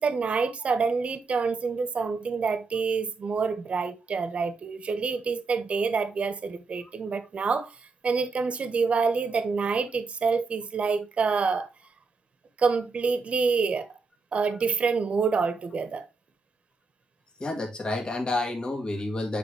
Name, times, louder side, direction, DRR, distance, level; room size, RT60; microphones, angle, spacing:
voice 1, 0.0-7.7 8.0-11.7 12.6-13.9 14.3-16.1, right 5 dB, 45° right, 1.2 m, -27 dB
voice 2, 17.4-19.4, left 2 dB, 30° left, 2.1 m, -29 dB
8.2 x 5.3 x 3.4 m
cardioid pair, 105°, 3 cm